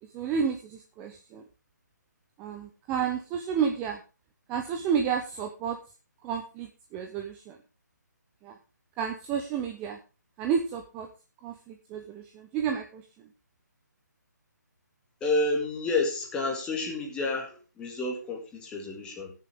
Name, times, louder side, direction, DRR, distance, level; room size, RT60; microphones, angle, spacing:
voice 1, 0.0-1.4 2.4-4.0 4.5-5.8 6.2-7.6 8.4-8.6 9.0-10.0 10.4-11.1 11.4-13.3, right 7 dB, 15° right, 5 dB, 0.7 m, -31 dB
voice 2, 15.2-19.3, left 2 dB, 10° left, 0 dB, 2.0 m, -30 dB
18.5 x 6.8 x 3.5 m, 0.32 s
figure-of-eight pair, 155°, 10 cm